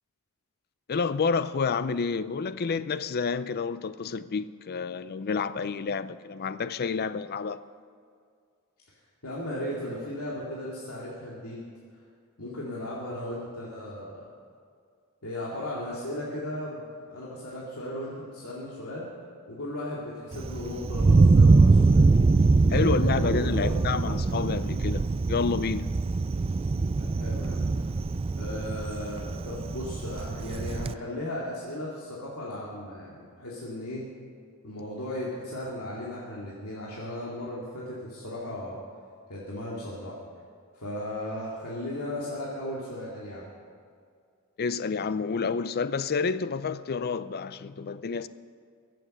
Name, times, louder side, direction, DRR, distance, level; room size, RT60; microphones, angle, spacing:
voice 1, 0.9-7.6 22.7-25.9 44.6-48.3, left 5 dB, 45° left, 0.5 m, -29 dB
voice 2, 9.2-11.6 12.4-14.3 15.2-19.0 19.5-22.1 22.7-23.8 27.0-27.6 28.3-34.0 34.6-38.8 39.3-40.2 40.7-43.5, left 1 dB, 85° left, 2.4 m, -36 dB
Thunder, 20.3-30.9, right 3 dB, 25° right, 0.3 m, -23 dB
22.5 x 7.7 x 6.6 m
head